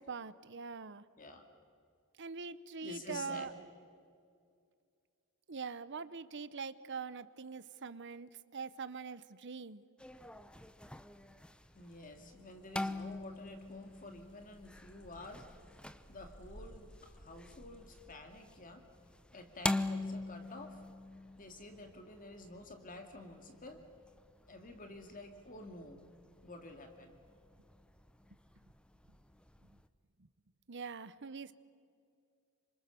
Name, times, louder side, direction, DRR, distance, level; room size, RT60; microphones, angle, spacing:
voice 1, 0.0-1.0 2.2-3.5 5.5-9.8 30.7-31.5, right 5 dB, 55° right, 14 dB, 0.9 m, -43 dB
voice 2, 2.8-3.5 11.7-15.6 16.1-18.8 19.3-20.8 21.4-23.8 24.5-26.0 26.4-27.2, left 2 dB, 40° left, 5 dB, 2.2 m, -50 dB
sound 1, 10.0-29.9, left 2 dB, 5° left, 0.7 m, -44 dB
sound 2, 11.7-18.2, equal, 55° left, 3.0 m, -59 dB
27.5 x 25.5 x 7.0 m, 2.4 s
head